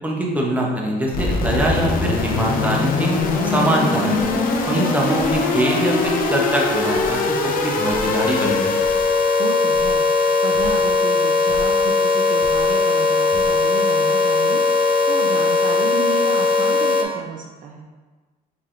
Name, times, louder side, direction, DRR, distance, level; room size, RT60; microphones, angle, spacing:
voice 1, 0.0-3.1 3.4-4.3 4.6-8.8, right 1 dB, 10° right, -2 dB, 0.9 m, -23 dB
sound 1, 1.1-17.0, left 3 dB, 55° left, 0.6 m, -20 dB
sound 2, 2.1-2.4 3.2-3.4 4.2-4.5 5.2-5.4 6.0-6.3 6.9-7.2 7.9-8.1 8.8-9.1 9.7-10.0 10.5-10.8 11.5-11.7 12.4-12.7 13.3-13.6, left 4 dB, 30° left, 1.2 m, -37 dB
voice 2, 9.4-14.6 15.1-17.9, right 5 dB, 50° right, 2 dB, 0.4 m, -32 dB
5.4 x 3.4 x 2.5 m, 1.4 s
cardioid pair, 110°, 17 cm